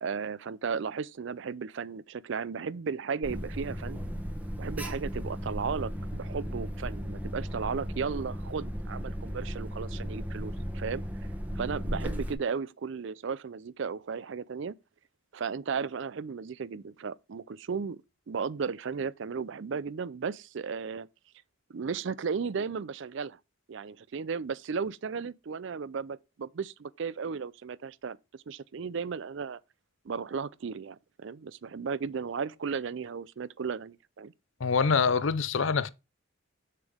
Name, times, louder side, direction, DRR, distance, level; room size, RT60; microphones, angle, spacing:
voice 1, 0.0-4.0 4.6-11.0 11.5-14.7 15.3-21.1 21.7-23.4 23.7-28.2 28.5-29.6 30.0-34.3, right 5 dB, 60° right, 0.4 m, -35 dB
Alarm, 3.2-12.3, equal, 5° right, 1.0 m, -36 dB
voice 2, 34.6-35.9, left 5 dB, 65° left, 0.6 m, -25 dB
7.2 x 6.6 x 3.5 m
head